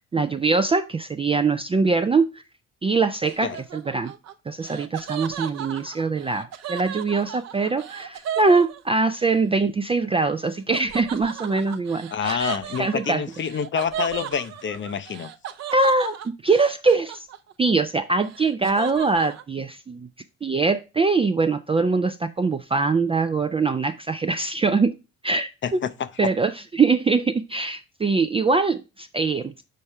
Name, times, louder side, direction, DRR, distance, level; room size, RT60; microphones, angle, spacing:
voice 1, 0.1-2.3 2.8-4.1 4.5-13.2 15.7-17.3 17.6-20.1 20.4-25.0 25.2-25.8 26.2-29.5, right 4 dB, 15° right, 0.4 m, -23 dB
Laughter, 3.2-9.3 10.7-17.7 18.0-19.4, right 9 dB, 40° right, 0.8 m, -35 dB
voice 2, 12.1-15.3 25.6-26.3, left 7 dB, 30° left, 0.6 m, -28 dB
6.4 x 5.3 x 3.3 m
figure-of-eight pair, 45°, 39 cm